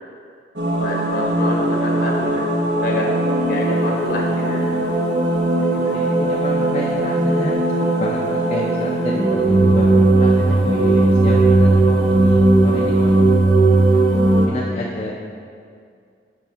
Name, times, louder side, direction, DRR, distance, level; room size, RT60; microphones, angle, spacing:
sound 1, 0.6-14.5, right 2 dB, 70° right, 1.1 m, -17 dB
voice 1, 0.8-3.2 3.5-4.6 5.6-5.9, left 1 dB, 55° left, -1 dB, 1.3 m, -27 dB
voice 2, 5.8-7.6 8.0-13.4 13.9-14.0 14.5-15.1, left 1 dB, 35° left, -2 dB, 0.5 m, -29 dB
7.8 x 4.5 x 5.4 m, 2.3 s
head